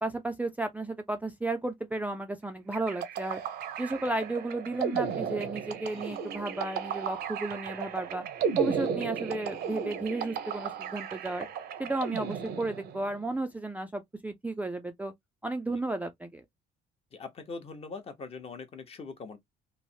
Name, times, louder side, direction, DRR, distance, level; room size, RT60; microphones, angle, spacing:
voice 1, 0.0-3.4 3.8-8.2 8.6-11.5 11.8-15.1 15.4-16.4, right 2 dB, 10° right, 0.4 m, -33 dB
sound 1, 2.7-13.2, right 7 dB, 70° right, 0.7 m, -34 dB
voice 2, 5.9-6.3 15.7-15.8 17.1-19.4, left 4 dB, 35° left, 0.8 m, -42 dB
3.1 x 2.0 x 2.7 m
cardioid pair, 110°, 17 cm